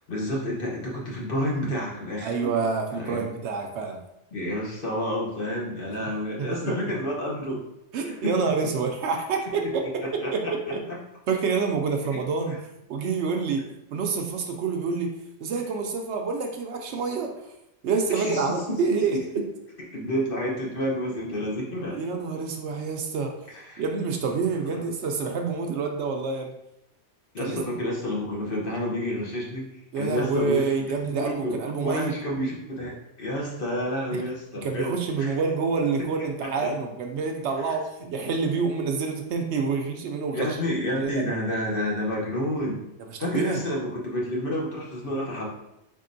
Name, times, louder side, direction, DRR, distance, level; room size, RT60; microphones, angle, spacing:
voice 1, 0.1-2.5 3.0-3.2 4.3-7.6 8.1-8.3 10.2-10.5 12.1-12.2 18.2-18.8 19.9-22.0 23.5-23.8 24.6-24.8 27.3-29.7 30.0-34.9 35.2-35.4 36.6-36.7 37.7-37.8 40.3-42.8 43.2-45.5, left 1 dB, 50° left, -3 dB, 1.0 m, -29 dB
voice 2, 2.2-4.0 6.4-6.7 7.9-10.8 11.3-12.6 12.9-13.6 13.9-15.1 15.4-17.5 17.8-19.2 21.9-23.3 23.8-26.5 27.4-27.6 29.9-32.1 34.1-34.2 34.6-40.5 40.9-41.2 43.0-43.6, right 4 dB, 70° right, 3 dB, 0.8 m, -27 dB
4.1 x 3.6 x 2.6 m, 0.84 s
omnidirectional pair, 1.3 m